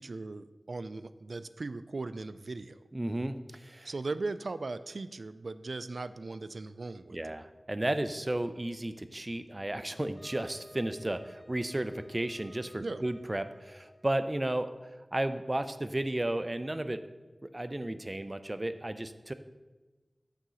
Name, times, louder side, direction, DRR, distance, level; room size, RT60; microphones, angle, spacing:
voice 1, 0.0-2.8 3.8-7.2 12.8-13.0, right 3 dB, 85° right, 13 dB, 0.3 m, -38 dB
voice 2, 2.9-3.9 7.1-17.0 17.4-19.3, right 1 dB, 35° right, 10 dB, 0.5 m, -33 dB
Wind instrument woodwind instrument, 10.2-14.5, equal, 15° left, 1.8 m, -56 dB
9.3 x 3.7 x 6.9 m, 1.2 s
wide cardioid pair, 45°, 0 cm